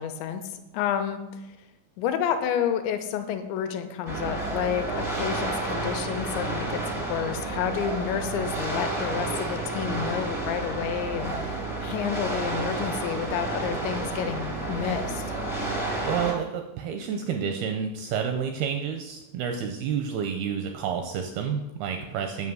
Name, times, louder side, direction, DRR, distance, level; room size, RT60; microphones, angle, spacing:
voice 1, 0.0-1.6 2.0-15.3, left 8 dB, 80° left, 7 dB, 3.1 m, -30 dB
sound 1, 4.0-16.3, right 2 dB, 5° right, 0.4 m, -30 dB
voice 2, 16.0-22.5, right 7 dB, 85° right, 5 dB, 2.2 m, -29 dB
9.5 x 5.8 x 7.6 m, 0.96 s
omnidirectional pair, 5.2 m